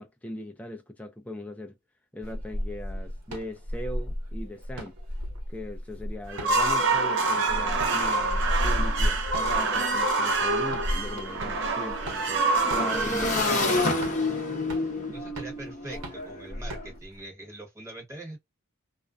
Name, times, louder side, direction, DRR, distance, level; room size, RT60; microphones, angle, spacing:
voice 1, 0.0-1.8 2.1-5.0 5.5-14.1, left 1 dB, 5° left, 0.3 m, -39 dB
sound 1, 2.2-17.2, equal, 90° right, 1.0 m, -34 dB
sound 2, 6.3-14.4, right 3 dB, 55° right, 0.6 m, -27 dB
Motorcycle / Engine, 9.4-9.5 9.7-16.9, left 2 dB, 35° left, 0.7 m, -30 dB
voice 2, 15.1-18.4, right 2 dB, 15° right, 1.0 m, -42 dB
2.4 x 2.1 x 2.4 m
head